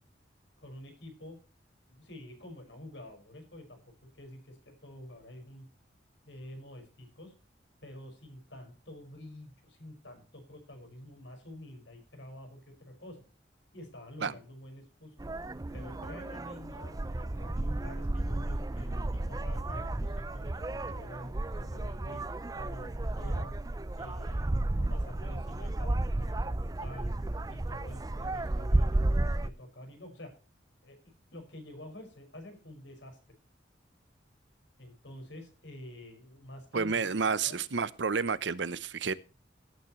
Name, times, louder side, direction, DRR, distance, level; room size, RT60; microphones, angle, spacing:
voice 1, 0.6-1.4 1.8-3.8 4.1-5.6 6.3-7.3 7.8-13.2 13.7-15.1 15.7-22.2 22.6-23.5 24.0-27.1 27.5-30.3 30.8-33.2 34.8-37.6, left 1 dB, 75° left, 5.5 m, -48 dB
sound 1, 15.2-29.5, right 2 dB, 20° right, 0.5 m, -32 dB
voice 2, 36.7-39.1, right 5 dB, 75° right, 0.8 m, -30 dB
17.5 x 9.5 x 3.1 m
head